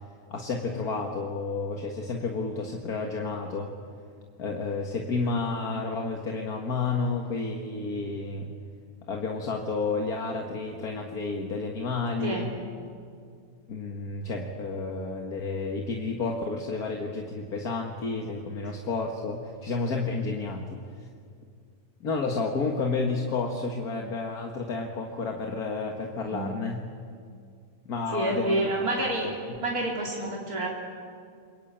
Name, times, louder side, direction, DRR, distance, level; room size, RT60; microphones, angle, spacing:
voice 1, 0.3-3.7 4.4-8.5 9.1-12.6 13.7-21.1 22.0-26.8 27.9-28.7, left 3 dB, 75° left, 2 dB, 2.2 m, -31 dB
voice 2, 28.1-29.3 29.6-30.7, right 1 dB, 75° right, -2 dB, 3.5 m, -28 dB
27.0 x 23.0 x 8.9 m, 2.3 s
omnidirectional pair, 1.6 m